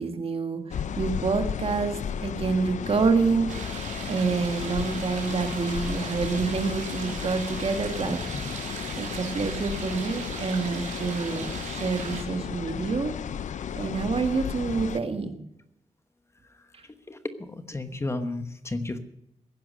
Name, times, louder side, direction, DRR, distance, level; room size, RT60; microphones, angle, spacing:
voice 1, 0.0-13.1 13.7-15.4 16.7-16.8, right 4 dB, 50° right, 7 dB, 1.6 m, -28 dB
sound 1, 0.7-15.0, left 8 dB, 75° left, 0.6 m, -34 dB
sound 2, 3.5-12.2, right 5 dB, 85° right, 3.3 m, -38 dB
voice 2, 17.5-19.0, left 2 dB, 20° left, 9 dB, 1.1 m, -32 dB
16.0 x 10.5 x 6.5 m, 0.80 s
wide cardioid pair, 130°, 13 cm